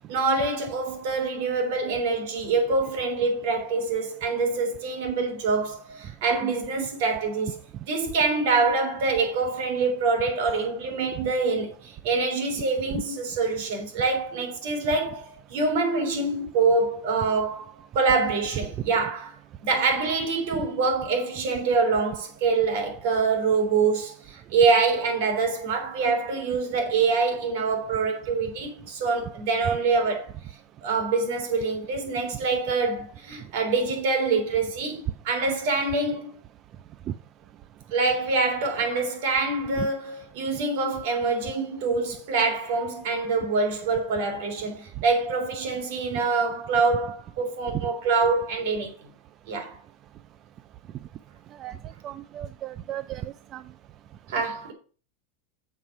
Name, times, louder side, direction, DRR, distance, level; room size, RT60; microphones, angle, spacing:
voice 1, 0.1-7.6 7.8-19.3 19.6-30.3 30.8-36.4 37.9-48.9 49.5-49.8 54.3-54.7, right 4 dB, 60° right, 3.6 m, -25 dB
voice 2, 52.0-53.6, right 12 dB, 25° right, 0.3 m, -36 dB
7.3 x 6.4 x 5.9 m
supercardioid pair, 170°, 0 cm